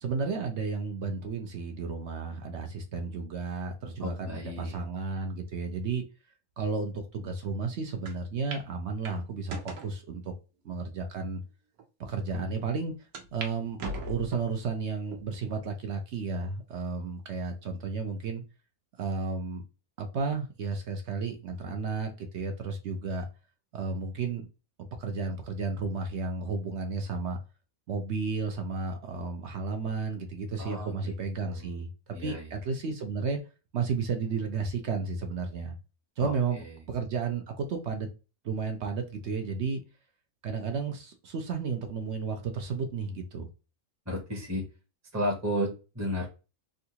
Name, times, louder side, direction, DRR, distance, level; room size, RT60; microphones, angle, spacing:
voice 1, 0.0-6.0 6.6-10.3 10.6-11.4 12.0-12.9 13.3-13.8 14.1-18.4 19.0-19.6 20.0-23.3 23.7-24.5 25.0-27.4 27.9-31.9 32.2-33.4 33.7-35.8 36.2-38.1 38.4-39.8 40.4-43.5, right 4 dB, 60° right, 5 dB, 0.8 m, -33 dB
voice 2, 4.0-4.7 30.6-31.7 32.1-32.5 36.2-36.7 44.1-44.7 45.1-46.3, equal, 15° right, 0 dB, 0.8 m, -33 dB
sound 1, 8.1-8.2 8.5-8.7 9.0-9.9 10.6-10.7 11.4-11.5 11.8-11.9 13.1-13.5 13.8-14.6 15.1-15.6 16.1-16.2 17.3-17.8, right 2 dB, 80° right, 1.3 m, -39 dB
3.7 x 2.3 x 2.7 m, 0.31 s
omnidirectional pair, 1.5 m